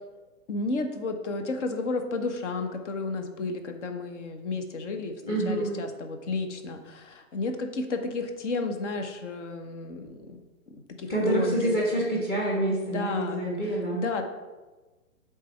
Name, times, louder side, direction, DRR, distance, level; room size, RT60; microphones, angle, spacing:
voice 1, 0.5-10.4 11.0-11.7 12.9-13.4 13.7-14.2, left 3 dB, 55° left, 6 dB, 1.0 m, -32 dB
voice 2, 5.2-5.8 11.1-14.0, right 1 dB, 20° left, -4 dB, 1.5 m, -27 dB
8.2 x 3.4 x 4.4 m, 1.2 s
figure-of-eight pair, 125°, 43 cm